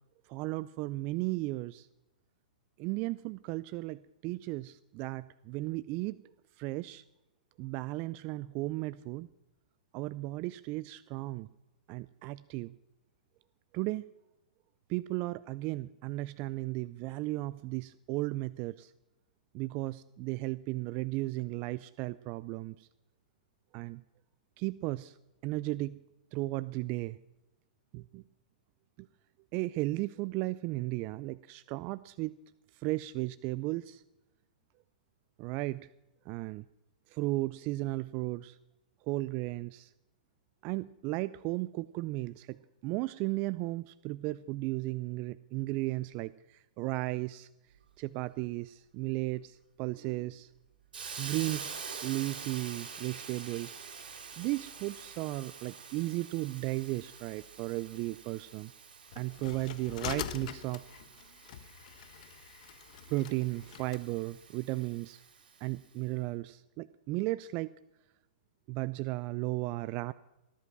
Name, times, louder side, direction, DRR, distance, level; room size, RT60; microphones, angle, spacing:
voice 1, 0.3-1.9 2.8-6.2 6.6-7.0 7.6-9.3 9.9-11.5 11.9-12.7 13.7-14.0 14.9-18.9 19.5-22.9 23.7-24.0 24.6-25.2 25.4-26.0 26.3-27.2 27.9-28.2 29.0-29.1 29.5-32.3 32.7-34.0 35.4-35.9 36.3-36.6 37.1-38.6 39.1-39.9 40.6-47.5 48.0-50.5 51.2-51.7 52.0-53.8 54.4-58.7 59.2-60.8 63.1-65.2 65.6-67.7 68.7-70.1, right 20 dB, 35° right, 17 dB, 0.4 m, -35 dB
Hiss, 50.9-65.7, right 6 dB, 75° right, 4.0 m, -47 dB
sound 1, 59.1-64.0, left 10 dB, 55° left, 1.4 m, -43 dB
18.5 x 11.5 x 6.1 m, 0.97 s
hypercardioid pair, 125°, 5 cm